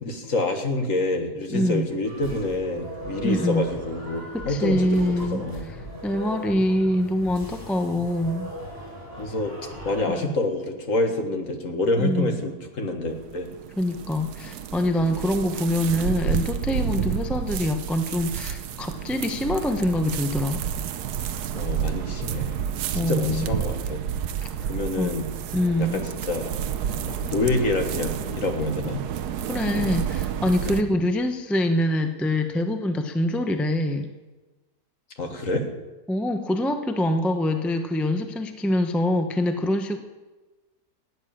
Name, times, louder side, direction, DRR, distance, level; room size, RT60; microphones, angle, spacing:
voice 1, 0.0-5.7 9.2-9.5 9.9-13.5 21.5-22.6 23.0-24.0 24.6-25.3 25.8-26.5 27.0-29.0 30.6-30.8 35.2-35.7, left 2 dB, 50° left, 5 dB, 2.0 m, -27 dB
voice 2, 1.5-1.9 3.2-3.7 4.3-5.5 6.0-8.5 10.1-10.3 12.0-12.4 13.8-20.6 22.9-23.5 25.0-25.1 25.5-26.0 29.5-34.1 36.1-40.0, left 1 dB, ahead, 6 dB, 0.7 m, -24 dB
sound 1, 2.0-10.3, right 1 dB, 35° left, 7.8 m, -38 dB
sound 2, 13.1-30.8, right 8 dB, 75° right, 1.3 m, -30 dB
16.0 x 9.7 x 8.8 m, 1.2 s
omnidirectional pair, 1.8 m